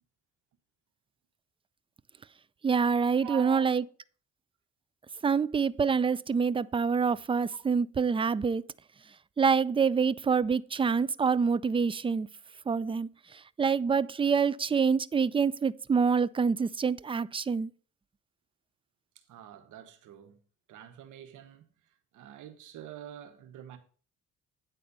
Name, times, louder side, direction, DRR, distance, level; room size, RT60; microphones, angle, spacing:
voice 1, 2.6-3.8 5.2-8.6 9.4-12.3 12.7-13.1 13.6-17.7, right 5 dB, 20° right, 0.3 m, -26 dB
voice 2, 3.2-3.8 19.1-20.4 20.7-23.8, right 10 dB, 80° right, 1.3 m, -45 dB
9.4 x 4.2 x 6.7 m
cardioid pair, 90°, 30 cm